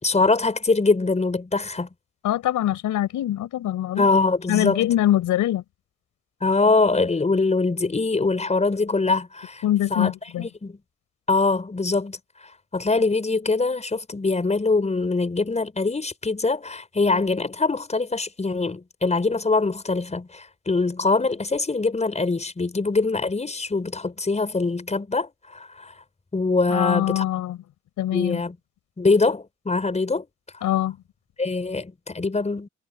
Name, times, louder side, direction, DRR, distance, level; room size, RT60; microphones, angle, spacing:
voice 1, 0.0-1.9 4.0-4.9 6.4-9.6 9.9-10.1 10.4-10.8 11.3-12.2 12.7-25.9 26.3-27.2 28.1-28.6 29.0-30.3 31.4-32.7, left 3 dB, 20° left, 5.2 m, -23 dB
voice 2, 2.2-4.0 4.5-5.6 9.6-10.5 26.7-27.6 28.0-28.4 30.6-31.0, left 12 dB, 80° left, 4.9 m, -23 dB
cardioid pair, 90°, 30 cm